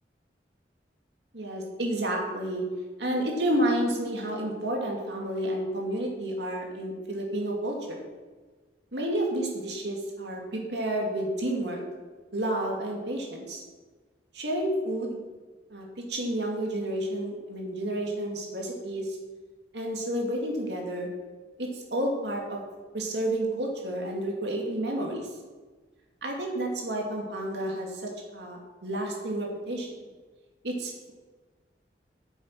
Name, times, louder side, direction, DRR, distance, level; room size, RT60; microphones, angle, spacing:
voice 1, 1.3-2.6 3.0-8.0 8.9-11.8 12.3-13.6 14.3-15.2 15.7-19.2 19.7-21.1 21.6-22.6 22.9-25.3 26.2-29.9 30.6-31.1, right 1 dB, 80° right, 0 dB, 2.5 m, -30 dB
9.2 x 7.3 x 6.0 m, 1.3 s
head